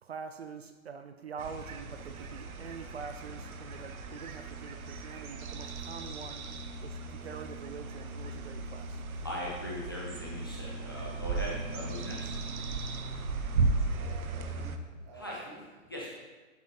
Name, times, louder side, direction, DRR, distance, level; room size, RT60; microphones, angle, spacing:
voice 1, 0.0-6.5 6.8-9.0, right 6 dB, 50° right, 8 dB, 0.5 m, -45 dB
sound 1, 1.4-14.8, right 3 dB, 85° right, 0.9 m, -36 dB
voice 2, 9.2-12.3 15.1-15.4 15.9-16.1, left 1 dB, 20° left, -5 dB, 0.4 m, -39 dB
voice 3, 13.9-16.1, right 1 dB, 15° right, -2 dB, 0.7 m, -52 dB
8.4 x 8.1 x 2.8 m, 1.3 s
hypercardioid pair, 160°, 42 cm